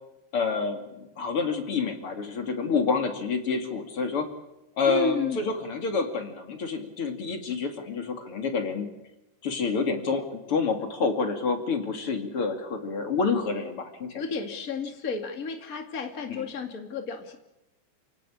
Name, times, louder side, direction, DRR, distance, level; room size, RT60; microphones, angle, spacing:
voice 1, 0.3-4.3 4.8-8.9 9.4-14.4 16.3-16.5, left 4 dB, 40° left, 7 dB, 2.2 m, -28 dB
voice 2, 4.8-5.5 14.1-17.4, left 4 dB, 75° left, 6 dB, 0.8 m, -32 dB
29.0 x 18.0 x 8.6 m, 0.95 s
omnidirectional pair, 5.8 m